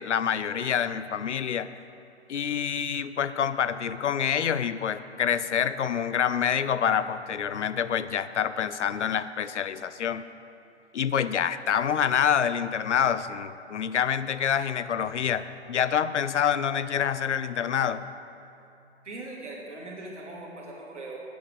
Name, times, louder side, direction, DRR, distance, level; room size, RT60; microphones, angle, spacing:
voice 1, 0.0-1.7 2.3-10.2 10.9-18.1, left 8 dB, 90° left, 14 dB, 0.5 m, -27 dB
voice 2, 19.0-21.2, right 2 dB, 85° right, -3 dB, 2.3 m, -40 dB
8.5 x 6.0 x 7.1 m, 2.7 s
hypercardioid pair, 130°, 34 cm